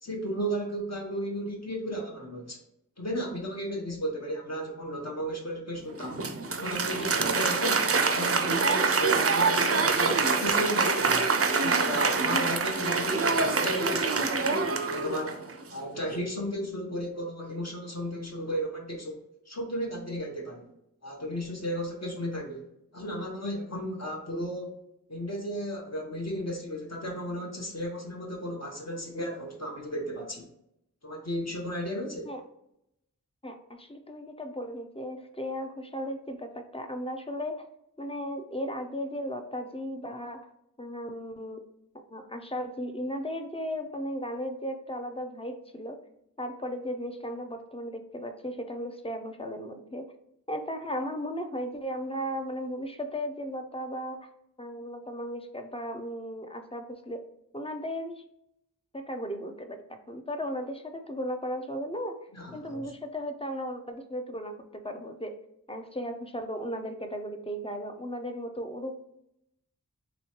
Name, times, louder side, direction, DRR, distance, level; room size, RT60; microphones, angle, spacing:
voice 1, 0.0-2.6 3.0-6.2 6.5-11.3 11.6-14.4 14.8-15.4 15.7-20.7 21.0-22.7 22.9-24.8 25.1-30.5 31.0-32.3 62.3-62.9, equal, 50° left, -1 dB, 0.8 m, -34 dB
Applause, 6.0-15.5, right 4 dB, 45° right, 0.4 m, -25 dB
voice 2, 33.4-37.6 38.0-40.5 40.8-41.6 42.1-46.0 46.4-50.1 50.5-54.2 54.6-57.2 57.5-58.2 58.9-62.2 62.5-65.4 65.7-69.0, equal, 15° left, 5 dB, 0.4 m, -36 dB
3.1 x 3.0 x 2.8 m, 0.81 s
wide cardioid pair, 45°, 34 cm